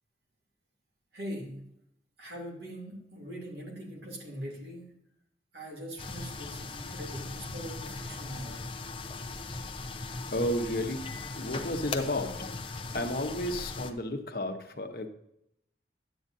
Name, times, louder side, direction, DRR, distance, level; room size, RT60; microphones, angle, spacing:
voice 1, 1.1-1.6 2.2-4.9 5.5-8.7, equal, 70° right, -1 dB, 2.8 m, -42 dB
sound 1, 6.0-13.9, left 3 dB, 30° left, 0.7 m, -39 dB
voice 2, 10.3-12.5 12.9-15.1, left 1 dB, 55° left, 5 dB, 1.0 m, -32 dB
11.0 x 8.7 x 2.7 m, 0.77 s
head